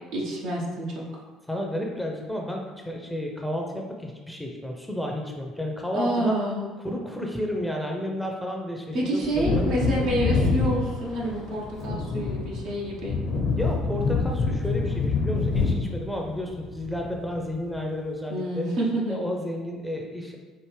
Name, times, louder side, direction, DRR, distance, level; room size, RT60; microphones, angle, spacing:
voice 1, 0.1-1.1 5.9-6.7 8.9-13.2 18.3-19.2, right 1 dB, 70° right, -4 dB, 1.1 m, -28 dB
voice 2, 1.5-6.4 6.8-9.7 13.6-18.7 19.1-20.4, left 1 dB, 5° left, 0 dB, 0.7 m, -31 dB
Wind / Thunder, 9.2-17.5 17.8-17.9, left 4 dB, 65° left, 0.9 m, -27 dB
4.8 x 2.5 x 3.3 m, 1.4 s
hypercardioid pair, 65°, 0 cm